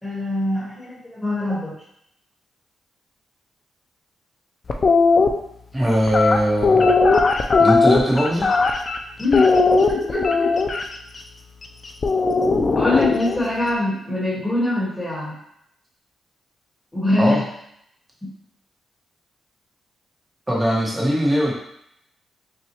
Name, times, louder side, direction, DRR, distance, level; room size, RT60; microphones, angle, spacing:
voice 1, 0.0-1.7 9.2-9.5 9.8-10.5 12.7-15.4 16.9-17.4 18.2-18.3, left 2 dB, 10° left, -10 dB, 1.2 m, -23 dB
sound 1, 4.7-5.3 6.1-9.0 9.3-10.8 12.0-13.4, left 4 dB, 30° left, 0.3 m, -17 dB
voice 2, 5.7-6.9 7.6-8.5 17.2-17.4 20.5-21.5, equal, 10° right, -3 dB, 0.9 m, -20 dB
5.7 x 2.3 x 2.9 m, 0.75 s
wide cardioid pair, 170°, 0 cm